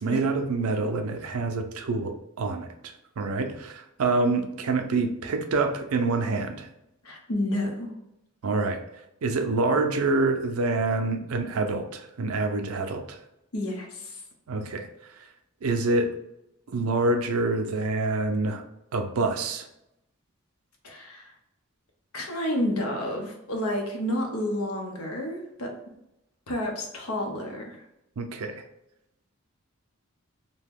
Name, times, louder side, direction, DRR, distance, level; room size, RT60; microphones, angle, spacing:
voice 1, 0.0-6.7 8.4-8.8 9.2-13.2 14.5-14.9 15.6-16.1 16.7-18.6 18.9-19.7 28.2-28.6, right 3 dB, 90° right, 6 dB, 0.5 m, -26 dB
voice 2, 7.0-7.9 13.5-14.2 20.8-21.3 22.1-25.7 26.5-27.8, left 1 dB, 90° left, 1 dB, 0.8 m, -30 dB
2.8 x 2.2 x 3.4 m, 0.84 s
head